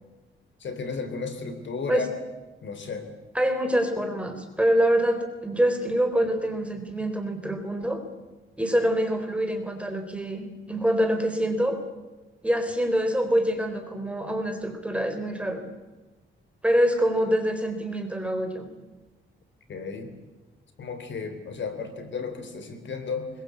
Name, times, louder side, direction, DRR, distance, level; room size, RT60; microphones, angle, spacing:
voice 1, 0.6-2.1 2.6-3.1 19.7-20.1 20.8-23.3, left 5 dB, 65° left, 8 dB, 3.7 m, -33 dB
voice 2, 3.3-8.0 8.6-11.8 12.4-15.6 16.6-18.7, right 1 dB, 5° right, 6 dB, 3.9 m, -25 dB
25.0 x 22.5 x 8.4 m, 1.2 s
wide cardioid pair, 130°, 20 cm